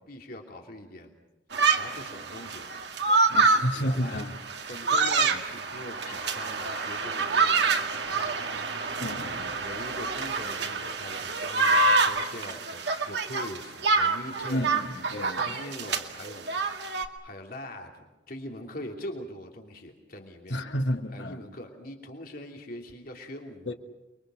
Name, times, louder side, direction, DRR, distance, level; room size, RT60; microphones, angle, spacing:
voice 1, 0.1-1.1 1.8-2.7 3.7-4.2 4.7-8.7 9.0-14.7 15.1-16.6 17.2-20.6 21.1-23.7, left 1 dB, 50° left, 2 dB, 3.0 m, -42 dB
sound 1, 1.5-17.1, right 3 dB, 65° right, 2.1 m, -27 dB
voice 2, 3.3-4.3 5.3-5.4 9.0-9.6 14.5-15.6 20.5-21.4 23.7-23.8, equal, 70° left, 4 dB, 2.2 m, -31 dB
30.0 x 23.0 x 6.4 m, 1.1 s
head